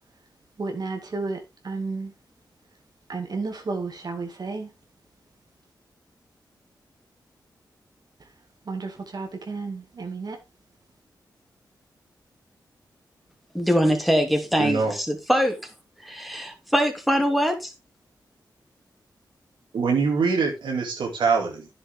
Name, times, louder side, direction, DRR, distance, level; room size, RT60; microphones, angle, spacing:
voice 1, 0.6-1.4 1.6-2.1 3.1-4.7 8.7-10.4, right 3 dB, 60° right, 2.1 m, -32 dB
voice 2, 13.5-15.7 16.0-17.7, equal, ahead, 2.7 m, -23 dB
voice 3, 14.6-14.9 19.7-21.7, right 5 dB, 85° right, 2.5 m, -23 dB
10.0 x 7.1 x 3.5 m
cardioid pair, 55°, 8 cm